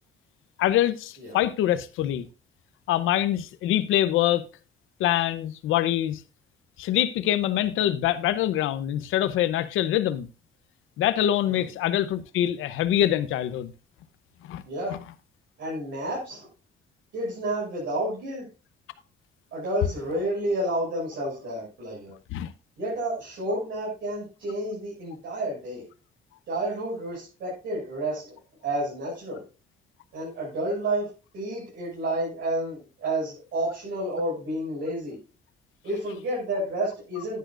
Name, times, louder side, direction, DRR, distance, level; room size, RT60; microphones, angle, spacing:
voice 1, 0.6-2.3 2.9-4.4 5.0-6.2 6.8-10.3 11.0-13.7 14.5-14.6 22.3-22.5, left 12 dB, 90° left, 0.8 m, -24 dB
voice 2, 14.6-15.0 15.6-16.5 17.1-18.5 19.5-22.1 22.8-25.9 26.5-28.4 28.6-29.4 30.1-31.1 31.3-35.2 35.8-37.4, right 1 dB, 70° right, 6.4 m, -30 dB
10.5 x 10.5 x 2.5 m
cardioid pair, 90°, 20 cm